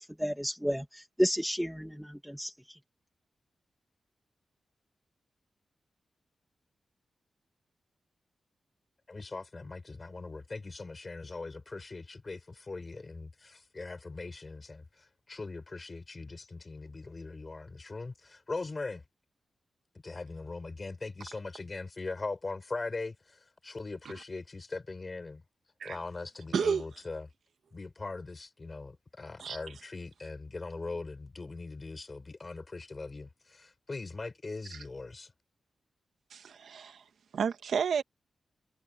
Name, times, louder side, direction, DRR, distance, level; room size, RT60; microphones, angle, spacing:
voice 1, 0.2-2.5, equal, ahead, 2.3 m, -31 dB
voice 2, 9.1-14.9 15.3-19.0 20.0-25.4 25.8-27.3 27.7-35.3, left 3 dB, 30° left, 6.1 m, -40 dB
voice 3, 26.5-26.9 29.4-29.8 34.7-34.9 36.3-37.0 37.3-38.0, right 6 dB, 85° right, 1.7 m, -32 dB
wide cardioid pair, 150°, 0 cm